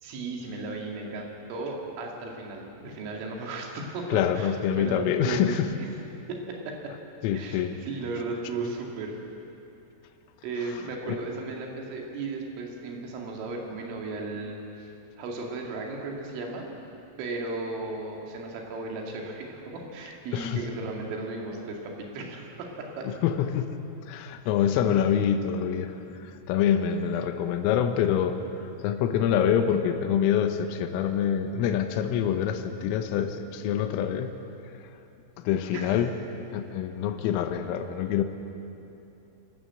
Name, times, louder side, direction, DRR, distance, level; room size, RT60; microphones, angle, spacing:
voice 1, 0.0-5.6 6.3-6.9 7.3-9.1 10.4-14.9 15.2-16.7 17.2-23.1 35.7-36.0, right 3 dB, 70° right, 0 dB, 4.8 m, -35 dB
voice 2, 4.1-5.7 7.2-7.8 11.1-11.2 20.3-20.6 23.0-23.8 24.1-34.4 35.4-36.2 36.5-38.2, left 9 dB, 85° left, 7 dB, 3.6 m, -26 dB
26.5 x 13.0 x 7.9 m, 2.8 s
omnidirectional pair, 5.9 m